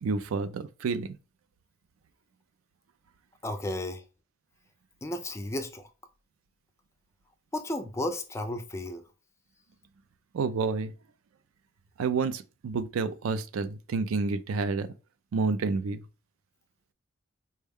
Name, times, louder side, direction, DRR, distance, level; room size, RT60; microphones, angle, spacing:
voice 1, 0.0-1.2 10.3-10.9 12.0-14.9 15.3-16.0, right 4 dB, 75° right, 0.4 m, -29 dB
voice 2, 3.4-4.0 5.0-5.9 7.5-9.0, left 1 dB, 15° left, 0.3 m, -33 dB
4.4 x 2.1 x 3.4 m
head